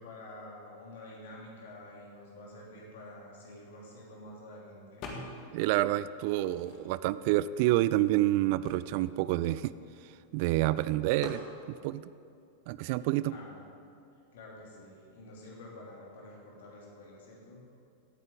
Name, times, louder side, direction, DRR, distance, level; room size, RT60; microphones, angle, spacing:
voice 1, 0.0-5.4 13.2-13.6 14.3-17.6, left 1 dB, 60° left, -3 dB, 3.1 m, -48 dB
sound 1, 5.0-5.6 5.9-7.2 7.8-7.9 8.1-10.4 11.2-11.5, left 4 dB, 35° left, 1.8 m, -46 dB
voice 2, 5.5-9.7 10.3-11.4 11.7-12.0 12.7-13.3, right 15 dB, 45° right, 17 dB, 0.3 m, -28 dB
17.5 x 9.4 x 3.9 m, 2.5 s
figure-of-eight pair, 90°, 0 cm